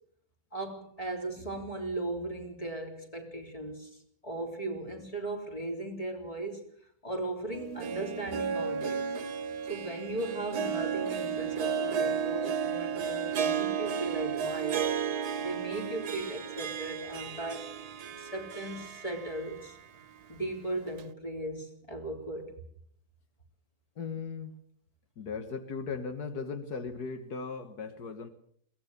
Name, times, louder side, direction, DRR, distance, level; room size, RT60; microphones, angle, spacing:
voice 1, 0.5-6.6 7.0-9.1 9.7-14.9 15.1-17.7 18.2-19.8 20.3-22.6, right 2 dB, 20° left, 2 dB, 3.8 m, -37 dB
Harp, 7.5-19.7 20.0-20.1 21.0-21.1, right 7 dB, 85° right, 1.6 m, -33 dB
voice 2, 24.0-24.6 25.2-28.3, left 5 dB, 80° left, 8 dB, 2.0 m, -37 dB
22.0 x 18.0 x 6.7 m, 0.63 s
omnidirectional pair, 1.6 m